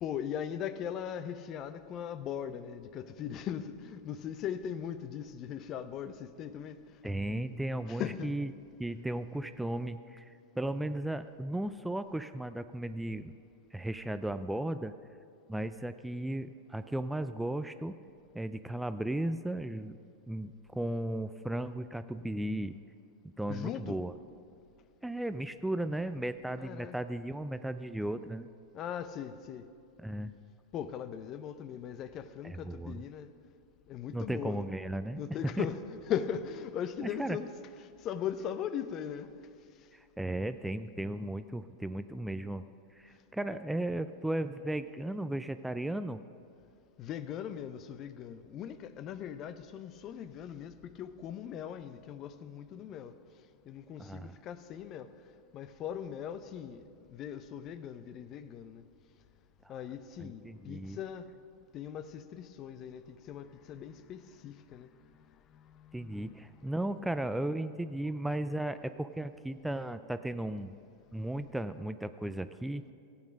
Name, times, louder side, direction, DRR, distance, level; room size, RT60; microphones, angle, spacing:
voice 1, 0.0-7.0 7.9-8.3 23.5-24.0 26.6-26.9 28.7-29.7 30.7-33.3 33.9-34.7 35.1-37.5 38.0-39.5 39.8-39.9 47.0-53.2 53.7-55.3 55.5-58.9 59.7-61.3 61.7-66.7 71.1-71.2, left 9 dB, 40° left, 0.6 m, -39 dB
voice 2, 7.0-8.5 8.8-13.3 13.7-14.9 15.5-17.9 18.3-20.0 20.3-22.8 23.4-24.1 25.0-28.5 30.0-30.3 32.4-33.0 34.1-35.2 35.6-35.7 37.0-37.4 39.9-42.7 42.9-46.2 54.0-54.4 59.6-59.8 60.2-61.0 65.9-70.7 71.1-72.9, right 1 dB, 5° right, 0.4 m, -35 dB
14.5 x 8.8 x 5.2 m
hypercardioid pair, 95°, 0 cm